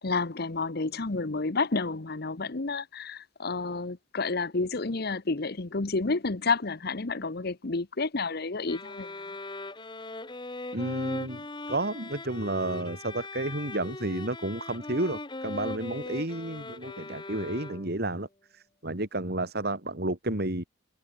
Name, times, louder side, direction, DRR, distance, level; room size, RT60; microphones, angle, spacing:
voice 1, 0.0-9.1, left 3 dB, 55° left, 1.0 m, -30 dB
sound 1, 8.7-18.1, left 2 dB, 25° left, 1.7 m, -40 dB
voice 2, 10.7-18.3 18.5-20.6, right 1 dB, 55° right, 3.5 m, -31 dB
head